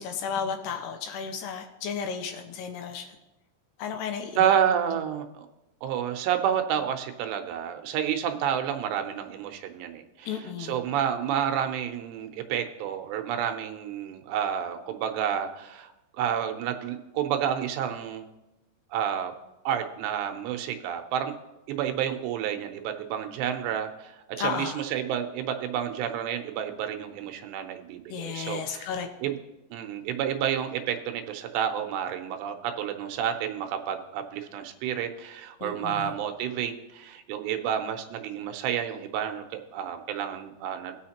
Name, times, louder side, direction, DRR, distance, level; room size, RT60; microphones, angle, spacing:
voice 1, 0.0-3.1 3.8-4.4 10.3-10.7 24.4-24.8 28.1-29.1 35.6-36.0, left 7 dB, 80° left, 5 dB, 2.6 m, -33 dB
voice 2, 4.4-5.5 5.8-18.3 18.9-19.3 19.7-21.3 21.7-29.4 29.7-41.0, right 9 dB, 80° right, 6 dB, 2.8 m, -30 dB
18.5 x 6.3 x 2.9 m, 0.97 s
omnidirectional pair, 5.1 m